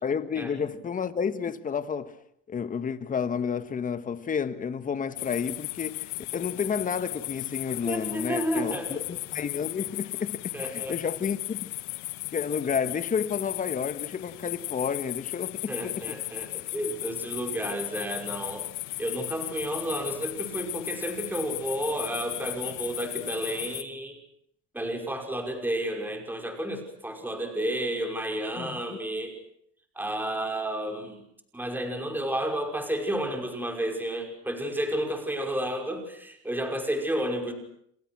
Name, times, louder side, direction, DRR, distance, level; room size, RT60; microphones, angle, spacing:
voice 1, 0.0-2.2 2.5-11.7 12.3-16.0 28.6-29.0, left 6 dB, 25° left, 1.7 m, -31 dB
sound 1, 5.2-23.8, left 23 dB, 80° left, 1.5 m, -36 dB
voice 2, 7.8-9.0 10.5-11.0 15.7-18.7 19.0-24.2 24.7-29.3 30.0-31.2 31.5-37.5, right 1 dB, 5° right, 5.6 m, -31 dB
30.0 x 27.0 x 6.3 m
cardioid pair, 135°, 35 cm